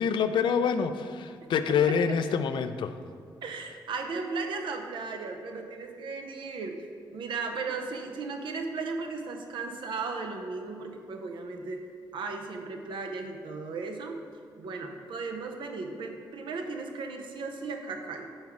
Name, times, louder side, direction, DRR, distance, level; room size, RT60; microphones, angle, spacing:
voice 1, 0.0-3.0, left 6 dB, 70° left, 10 dB, 0.4 m, -26 dB
voice 2, 3.4-6.8 7.1-11.8 12.1-14.2 14.6-18.3, right 4 dB, 70° right, 4 dB, 0.7 m, -36 dB
5.4 x 4.8 x 4.6 m, 2.1 s
supercardioid pair, 50°, 9 cm